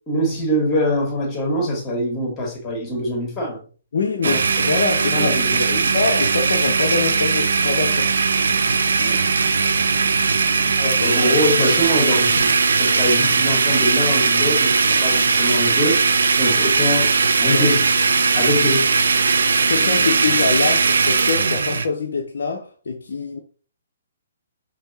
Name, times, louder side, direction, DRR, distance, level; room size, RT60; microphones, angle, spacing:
voice 1, 0.1-3.6 4.2-4.6 5.1-5.9 9.0-9.2 10.5-16.0 16.4-17.1 17.4-17.8 18.3-18.9 20.0-20.1, equal, 15° left, 1.6 m, -23 dB
voice 2, 3.9-8.1 9.7-9.9 10.8-11.2 17.4-17.6 19.7-23.4, left 4 dB, 55° left, 0.5 m, -25 dB
Domestic sounds home sounds, 4.2-21.9, right 4 dB, 65° right, 0.3 m, -19 dB
5.1 x 2.7 x 2.6 m
figure-of-eight pair, 125°, 0 cm